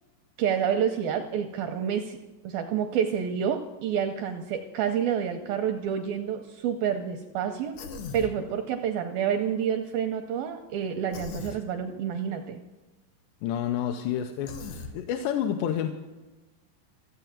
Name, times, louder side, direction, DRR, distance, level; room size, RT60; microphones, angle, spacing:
voice 1, 0.4-2.2 2.4-7.8 8.1-12.6, right 8 dB, 80° right, 6 dB, 2.1 m, -28 dB
Human voice, 7.8-8.3 11.1-11.6 14.5-14.9, left 4 dB, 65° left, 1.9 m, -38 dB
voice 2, 13.4-14.6 14.9-15.9, left 9 dB, 85° left, 5 dB, 2.8 m, -28 dB
15.0 x 8.0 x 7.3 m, 1.2 s
omnidirectional pair, 4.9 m